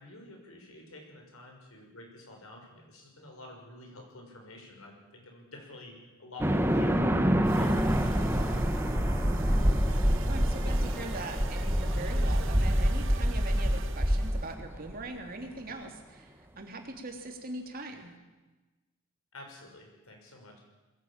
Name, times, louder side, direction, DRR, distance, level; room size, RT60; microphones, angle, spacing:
voice 1, 0.0-5.9 6.2-8.6 19.3-20.6, left 2 dB, 90° left, 2 dB, 6.2 m, -49 dB
sound 1, 6.4-14.9, equal, 10° right, 1.2 m, -26 dB
sound 2, 7.4-14.5, right 4 dB, 65° right, 1.4 m, -44 dB
voice 2, 10.3-18.1, right 2 dB, 45° right, 3 dB, 3.1 m, -41 dB
21.5 x 16.0 x 9.0 m, 1.2 s
head